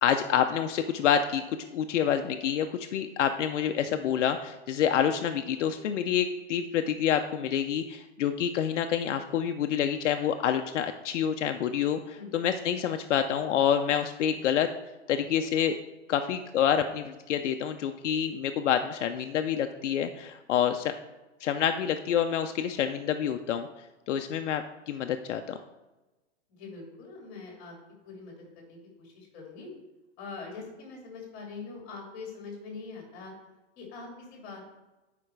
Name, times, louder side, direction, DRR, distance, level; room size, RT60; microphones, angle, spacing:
voice 1, 0.0-14.7 15.1-15.8 16.1-20.9 21.4-23.7 24.1-25.6, left 9 dB, 80° left, 7 dB, 0.7 m, -27 dB
voice 2, 26.5-27.7 28.0-29.7 30.2-33.3 33.8-34.7, left 4 dB, 35° left, 0 dB, 3.1 m, -43 dB
9.5 x 5.0 x 4.6 m, 1.1 s
supercardioid pair, 155°, 35 cm